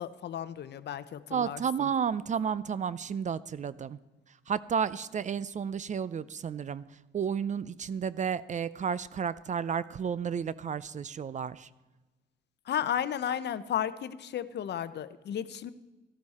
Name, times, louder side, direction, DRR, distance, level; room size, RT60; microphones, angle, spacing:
voice 1, 0.0-1.9 12.7-15.7, left 9 dB, 60° left, 14 dB, 0.7 m, -34 dB
voice 2, 1.3-4.0 4.5-6.8 7.1-11.7, right 7 dB, 40° right, 18 dB, 0.5 m, -32 dB
13.5 x 13.0 x 4.2 m, 1.2 s
cardioid pair, 90°, 20 cm